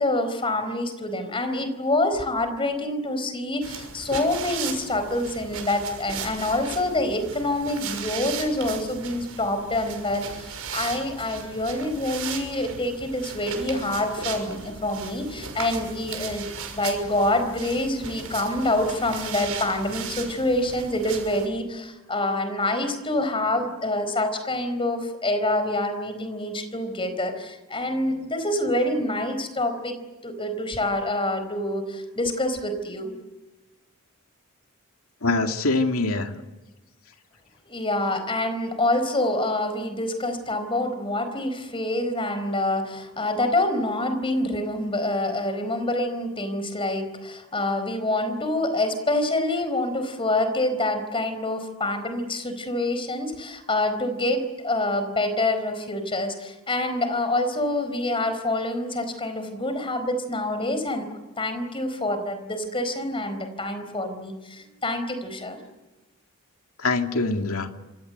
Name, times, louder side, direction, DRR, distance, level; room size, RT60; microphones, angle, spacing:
voice 1, 0.0-16.5 16.7-30.0 30.2-33.1 37.7-61.1 61.4-65.6, left 1 dB, 25° left, 9 dB, 4.5 m, -26 dB
sound 1, 3.6-21.5, right 6 dB, 85° right, 6.2 m, -37 dB
voice 2, 35.2-36.3 66.8-67.7, left 3 dB, 75° left, 4 dB, 2.4 m, -24 dB
27.0 x 26.5 x 8.1 m, 1.1 s
head